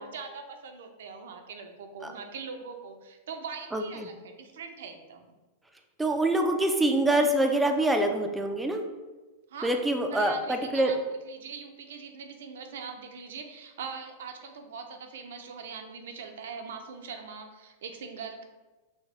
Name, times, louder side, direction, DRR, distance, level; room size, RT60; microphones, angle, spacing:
voice 1, 0.0-5.3 9.5-9.8 10.1-11.0 11.2-18.5, right 5 dB, 80° right, 5 dB, 0.6 m, -42 dB
voice 2, 3.7-4.1 6.0-8.8 9.6-10.9, right 1 dB, 5° right, 4 dB, 0.3 m, -25 dB
6.2 x 2.2 x 3.4 m, 1.2 s
supercardioid pair, 170°, 0 cm